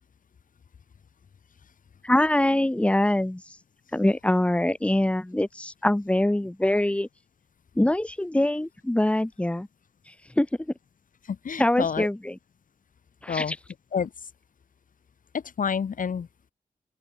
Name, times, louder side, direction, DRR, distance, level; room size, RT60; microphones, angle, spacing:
voice 1, 2.0-3.4 3.9-7.1 7.7-9.7 10.4-10.7 11.6-12.3 13.2-13.4, left 1 dB, 10° left, 1.5 m, -24 dB
voice 2, 11.2-12.1 13.3-13.5 13.9-14.1 15.3-16.5, left 6 dB, 65° left, 1.3 m, -29 dB
open air
wide cardioid pair, 150°, 15 cm